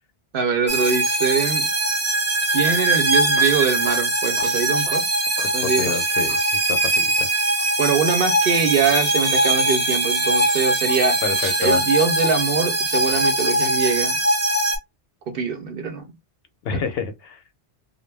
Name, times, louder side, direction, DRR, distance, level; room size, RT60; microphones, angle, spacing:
voice 1, 0.3-1.7 2.5-5.0 5.5-5.9 7.8-11.2 11.6-14.2 15.3-16.1 16.7-16.8, right 6 dB, 60° right, 0.7 m, -23 dB
sound 1, 0.7-14.8, right 1 dB, 20° right, 0.4 m, -21 dB
sound 2, 3.0-6.0 6.3-6.5 7.6-7.7 8.5-11.9, right 5 dB, 85° right, 1.0 m, -35 dB
voice 2, 5.4-6.4 6.7-7.3 11.2-11.8 16.6-17.4, left 6 dB, 70° left, 0.7 m, -28 dB
2.2 x 2.0 x 3.2 m
omnidirectional pair, 1.1 m